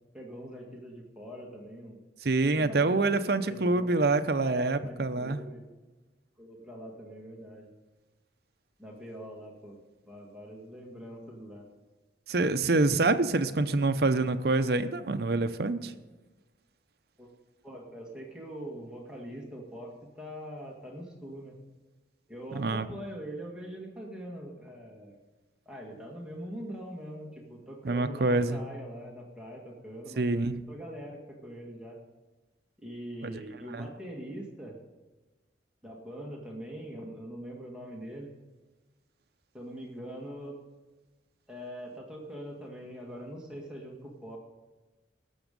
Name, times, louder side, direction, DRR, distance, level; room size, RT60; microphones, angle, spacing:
voice 1, 0.1-2.0 2.5-3.1 3.4-4.0 4.4-5.6 6.4-7.7 8.8-9.8 10.1-11.7 17.2-17.3 17.6-21.6 22.3-25.2 25.7-30.2 30.7-32.0 32.8-34.8 35.8-38.3 39.5-40.6 41.5-44.4, equal, 5° right, -2 dB, 1.9 m, -43 dB
voice 2, 2.2-5.4 12.3-15.9 22.5-22.9 27.8-28.6 30.2-30.6 33.2-33.4 33.7-33.9, right 3 dB, 60° right, 10 dB, 0.7 m, -26 dB
18.0 x 7.2 x 5.3 m, 1.2 s
head